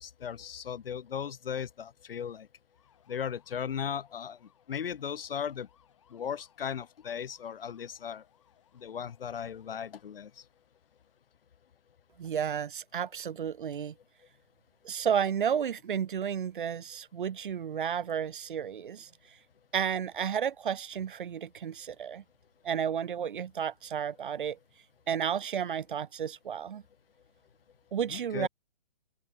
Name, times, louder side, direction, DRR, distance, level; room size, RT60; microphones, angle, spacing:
voice 1, 0.0-2.5 3.1-5.7 6.1-8.2 8.7-10.4 28.1-28.5, left 8 dB, 75° left, 0.8 m, -37 dB
sound 1, 2.7-11.2, left 9 dB, 30° left, 3.5 m, -68 dB
voice 2, 12.2-13.9 14.8-19.1 19.7-22.2 22.6-24.6 25.1-26.8 27.9-28.5, right 8 dB, 60° right, 0.5 m, -32 dB
hypercardioid pair, 180°, 29 cm